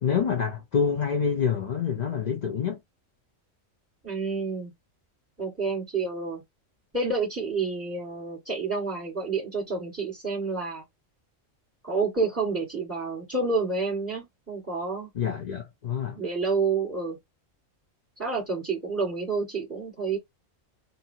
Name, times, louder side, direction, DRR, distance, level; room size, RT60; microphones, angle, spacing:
voice 1, 0.0-2.8 15.1-16.2, left 7 dB, 50° left, 0.5 m, -27 dB
voice 2, 4.0-4.7 5.4-6.4 6.9-10.8 11.8-15.1 16.1-17.2 18.2-20.2, right 4 dB, 10° right, 1.7 m, -29 dB
2.7 x 2.7 x 2.7 m
omnidirectional pair, 1.4 m